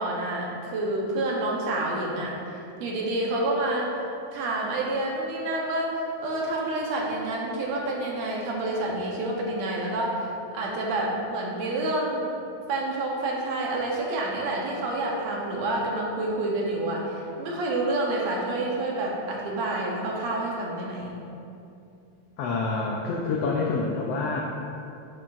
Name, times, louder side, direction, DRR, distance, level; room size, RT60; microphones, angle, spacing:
voice 1, 0.0-3.9 4.3-10.3 10.5-12.3 12.7-21.1, right 2 dB, 70° right, -2 dB, 2.0 m, -28 dB
voice 2, 22.4-24.4, left 3 dB, 90° left, -2 dB, 1.4 m, -27 dB
8.6 x 5.8 x 2.5 m, 2.6 s
omnidirectional pair, 3.4 m